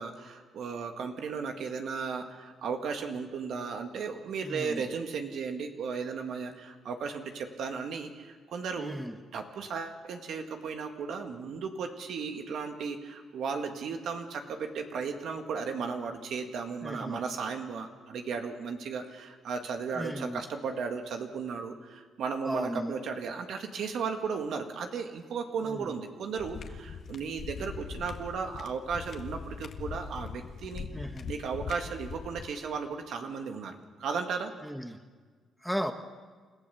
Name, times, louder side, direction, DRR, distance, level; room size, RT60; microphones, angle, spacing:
voice 1, 0.0-9.0 9.3-34.5, right 5 dB, 70° right, 4 dB, 1.9 m, -35 dB
voice 2, 4.4-4.8 8.8-9.1 16.8-17.2 20.0-20.4 22.4-22.9 25.7-25.9 30.9-31.3 34.6-35.0 35.6-35.9, equal, ahead, 7 dB, 1.3 m, -35 dB
sound 1, 26.4-32.5, left 6 dB, 60° left, 1.6 m, -41 dB
29.0 x 14.5 x 7.1 m, 1.5 s
cardioid pair, 90°, 0 cm